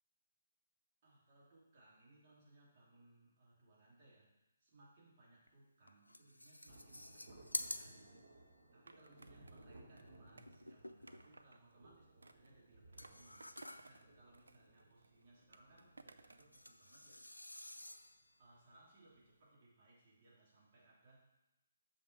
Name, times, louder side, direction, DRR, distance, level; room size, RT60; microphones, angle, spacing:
voice 1, 1.0-8.2 8.7-17.2 18.2-21.3, right 2 dB, 40° right, -6 dB, 3.0 m, -67 dB
sound 1, 5.5-5.6 5.9-8.5 10.5-11.5 13.0-14.1 16.4-18.3, left 1 dB, 85° left, 0.4 m, -49 dB
Thunder, 6.7-18.7 18.9-19.0, right 2 dB, 55° right, 1.4 m, -63 dB
Skateboard, 8.9-11.6 12.2-14.1 14.3-16.5, right 3 dB, 75° right, 0.4 m, -62 dB
7.0 x 5.8 x 4.6 m, 0.93 s
figure-of-eight pair, 135°, 0 cm